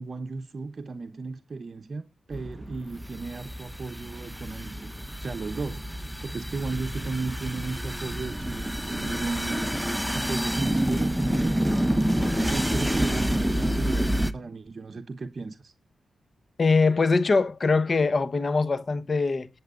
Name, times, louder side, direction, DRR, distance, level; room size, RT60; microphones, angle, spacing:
voice 1, 0.0-4.9 5.2-15.7, right 3 dB, 50° right, 0.9 m, -35 dB
sound 1, 2.3-14.3, equal, ahead, 1.0 m, -28 dB
voice 2, 16.6-19.5, left 4 dB, 45° left, 1.1 m, -22 dB
19.5 x 7.6 x 2.5 m
cardioid pair, 80°, 0 cm